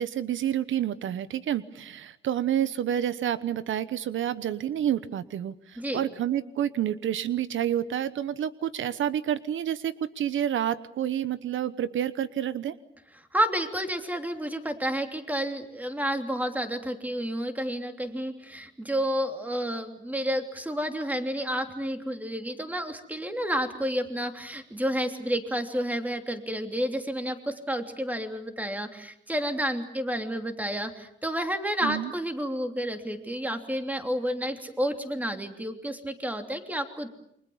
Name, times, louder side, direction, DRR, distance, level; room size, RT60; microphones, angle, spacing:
voice 1, 0.0-12.7 31.8-32.1, right 10 dB, 80° right, 14 dB, 1.0 m, -29 dB
voice 2, 13.3-37.1, equal, 10° right, 5 dB, 3.1 m, -30 dB
29.0 x 24.5 x 7.2 m, 0.74 s
cardioid pair, 115°, 20 cm